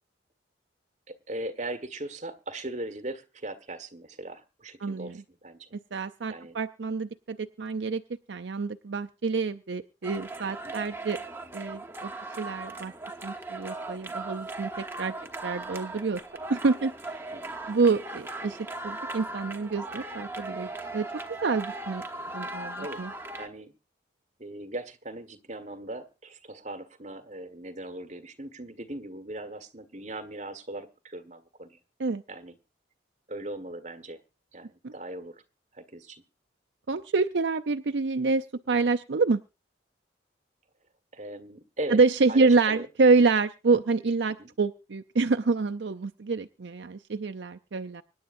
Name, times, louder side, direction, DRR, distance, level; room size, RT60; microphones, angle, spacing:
voice 1, 1.1-5.7 6.3-6.6 10.6-10.9 15.1-15.3 17.3-17.6 22.8-23.0 23.4-23.7 24.4-31.8 32.3-32.6 33.3-34.2 34.5-35.4 35.7-36.2 41.1-42.0 42.3-42.9 44.4-44.5, right 1 dB, 35° right, 8 dB, 1.5 m, -39 dB
voice 2, 4.8-5.2 5.9-8.0 8.3-11.2 11.5-12.1 12.4-12.9 13.2-15.1 15.4-16.2 16.5-17.2 17.7-18.6 18.8-21.1 21.4-22.0 22.3-23.1 32.0-32.2 34.8-34.9 36.9-39.4 41.9-48.0, right 4 dB, 70° right, 7 dB, 0.6 m, -27 dB
sound 1, 10.0-23.5, right 2 dB, 10° right, 1.0 m, -38 dB
25.0 x 10.5 x 2.6 m, 0.30 s
head